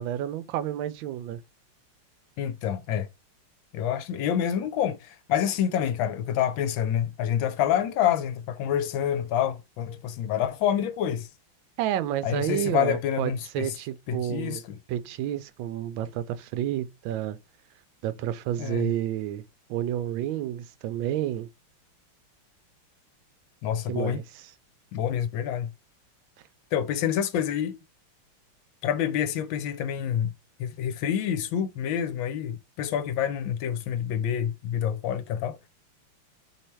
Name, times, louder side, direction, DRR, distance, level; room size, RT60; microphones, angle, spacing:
voice 1, 0.0-1.4 11.8-14.6 14.9-17.4 18.0-19.4 19.7-21.5 23.9-24.5, right 11 dB, 75° right, 1.2 m, -30 dB
voice 2, 2.4-3.1 3.7-11.3 12.2-13.7 14.1-14.8 18.6-18.9 23.6-24.2 24.9-25.7 26.7-27.8 28.8-30.3 30.6-35.6, left 9 dB, 75° left, 1.3 m, -27 dB
3.4 x 3.2 x 4.4 m
omnidirectional pair, 2.4 m